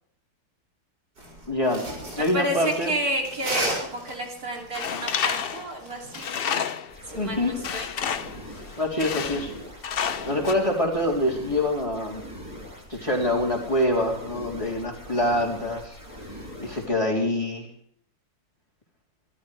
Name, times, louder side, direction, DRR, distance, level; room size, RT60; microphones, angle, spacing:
sound 1, 1.2-6.3, right 1 dB, 70° right, 7.2 m, -34 dB
voice 1, 1.5-1.8 2.2-2.9 7.1-7.5 8.8-9.5 10.2-12.2 12.9-16.0 16.6-17.7, left 1 dB, 15° left, -1 dB, 3.4 m, -25 dB
voice 2, 2.2-6.3 7.1-7.9, right 1 dB, 55° right, 0 dB, 3.4 m, -30 dB
Tools, 4.7-7.0 7.6-8.4 9.0-9.5 9.8-10.5, left 8 dB, 75° left, 0.5 m, -29 dB
sound 2, 6.9-16.9, equal, 15° right, 6.0 m, -42 dB
25.5 x 13.0 x 3.4 m, 0.66 s
omnidirectional pair, 1.9 m